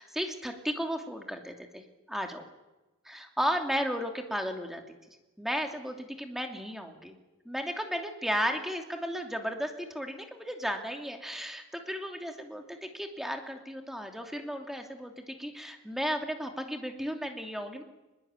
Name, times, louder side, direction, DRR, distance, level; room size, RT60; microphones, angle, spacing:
voice 1, 0.0-2.4 3.0-4.8 5.4-7.1 7.4-17.8, equal, ahead, 4 dB, 2.8 m, -34 dB
24.0 x 22.0 x 9.1 m, 1.1 s
head